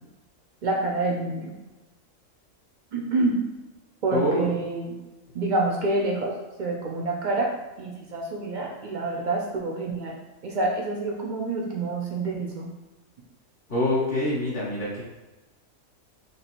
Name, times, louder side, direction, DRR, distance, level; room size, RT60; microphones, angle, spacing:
voice 1, 0.6-1.5 2.9-3.4 4.0-5.0 5.3-10.2 10.4-12.7, right 2 dB, 75° right, -1 dB, 0.4 m, -27 dB
voice 2, 4.1-4.5 13.7-15.0, left 1 dB, 50° left, -6 dB, 0.9 m, -25 dB
3.2 x 2.4 x 4.3 m, 1.1 s
omnidirectional pair, 1.4 m